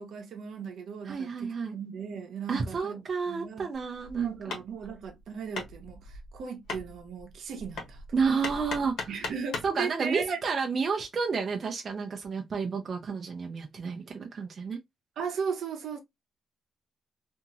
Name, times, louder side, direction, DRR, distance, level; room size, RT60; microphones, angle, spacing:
voice 1, 0.0-3.0 3.3-3.7 4.1-8.0 9.1-10.4 15.2-16.0, right 6 dB, 70° right, 0.8 m, -37 dB
voice 2, 1.1-1.7 2.5-4.4 8.1-9.1 9.6-14.8, right 5 dB, 40° right, 0.5 m, -31 dB
Hammer, 3.7-9.8, left 3 dB, 75° left, 1.1 m, -40 dB
2.9 x 2.6 x 2.4 m
cardioid pair, 135°, 0 cm